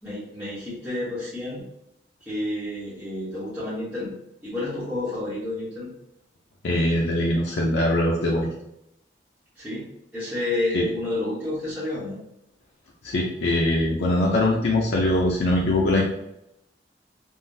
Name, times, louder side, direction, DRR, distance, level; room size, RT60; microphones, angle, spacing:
voice 1, 0.0-1.7 2.2-4.1 4.4-5.9 9.5-9.9 10.1-12.2, left 2 dB, 5° right, -12 dB, 0.9 m, -30 dB
voice 2, 6.6-8.5 10.7-10.8 13.0-16.0, left 1 dB, 80° left, -2 dB, 0.5 m, -22 dB
3.6 x 2.1 x 2.6 m, 0.81 s
head